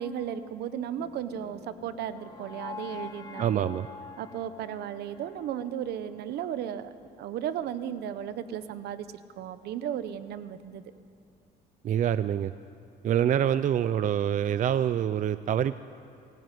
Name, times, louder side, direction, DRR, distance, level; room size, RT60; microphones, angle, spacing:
voice 1, 0.0-3.6 4.2-6.9 7.2-10.8, right 9 dB, 75° right, 12 dB, 1.2 m, -35 dB
sound 1, 0.9-7.0, left 4 dB, 25° left, 2.0 m, -46 dB
voice 2, 3.4-3.9 11.8-12.5 13.0-15.8, right 10 dB, 50° right, 13 dB, 0.6 m, -26 dB
24.0 x 16.0 x 9.4 m, 2.5 s
cardioid pair, 110°, 17 cm